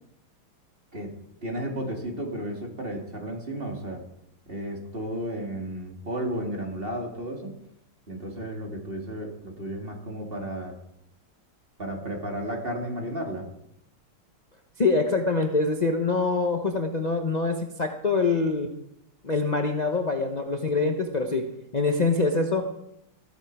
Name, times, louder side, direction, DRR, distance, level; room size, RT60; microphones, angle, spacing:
voice 1, 0.9-4.0 4.5-7.5 8.1-10.7 11.8-13.5, right 1 dB, 25° right, 0 dB, 2.8 m, -33 dB
voice 2, 14.8-18.7 19.2-21.5 21.7-22.7, left 3 dB, 45° left, 4 dB, 0.5 m, -24 dB
15.0 x 13.0 x 4.7 m, 0.78 s
omnidirectional pair, 2.4 m